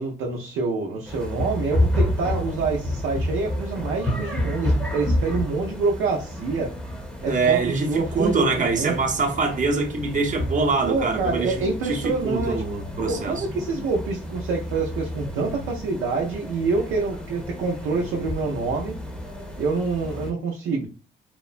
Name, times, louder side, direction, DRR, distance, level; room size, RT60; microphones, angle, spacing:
voice 1, 0.0-6.7 7.2-8.9 10.8-12.6 13.0-18.9 19.6-20.9, right 4 dB, 90° right, 0.5 m, -26 dB
sound 1, 1.1-20.3, left 1 dB, 5° left, 0.7 m, -30 dB
voice 2, 7.2-13.4, right 4 dB, 40° right, 0.7 m, -24 dB
2.9 x 2.1 x 2.4 m
cardioid pair, 90°, 20 cm